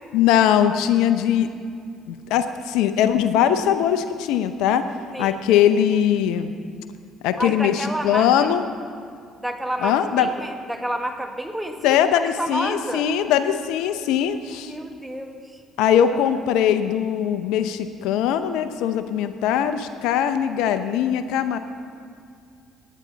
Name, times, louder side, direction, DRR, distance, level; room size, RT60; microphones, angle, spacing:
voice 1, 0.1-1.5 2.1-4.9 5.2-6.5 7.2-8.6 9.8-10.3 11.8-14.7 15.8-21.6, left 9 dB, 75° left, 10 dB, 0.6 m, -21 dB
voice 2, 7.4-8.3 9.4-12.0 12.4-13.1 14.6-15.6, right 1 dB, 5° right, 4 dB, 1.6 m, -29 dB
18.0 x 9.5 x 4.0 m, 2.3 s
hypercardioid pair, 60°, 0 cm